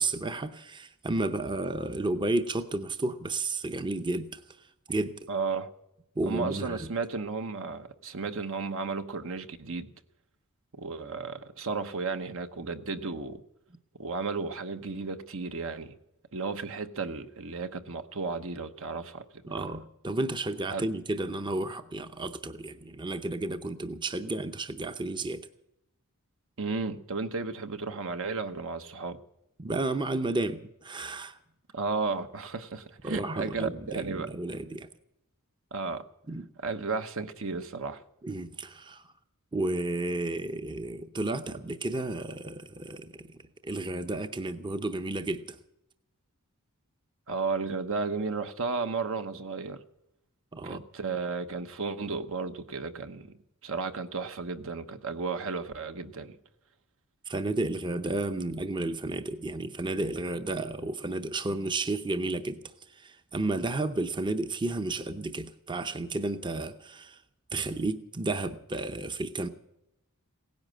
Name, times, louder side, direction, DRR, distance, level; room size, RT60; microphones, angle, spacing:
voice 1, 0.0-5.3 6.2-6.9 19.5-25.5 29.6-31.4 33.0-34.9 36.3-36.5 38.2-39.0 39.5-43.4 43.6-45.6 50.5-50.8 57.2-62.6 62.9-67.2 67.5-69.5, right 2 dB, 20° right, 0.7 m, -32 dB
voice 2, 5.3-5.7 6.3-9.9 10.8-13.4 14.0-16.0 16.3-19.4 20.7-20.8 26.6-29.2 31.7-34.3 35.7-36.1 36.6-38.0 47.3-49.8 50.6-53.3 53.6-56.4, right 4 dB, 65° right, 1.0 m, -33 dB
17.0 x 10.5 x 7.6 m
head